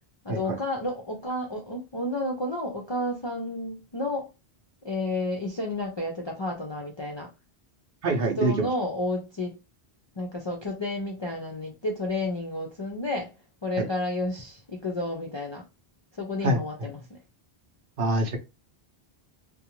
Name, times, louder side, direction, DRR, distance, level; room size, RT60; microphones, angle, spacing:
voice 1, 0.2-4.3 4.8-7.3 8.4-9.5 10.2-13.3 13.6-15.6 16.2-17.2, left 2 dB, 45° left, 0.3 m, -31 dB
voice 2, 8.0-8.7 16.4-16.6 18.0-18.4, right 2 dB, 60° right, 0.8 m, -25 dB
2.5 x 2.2 x 2.9 m
omnidirectional pair, 1.1 m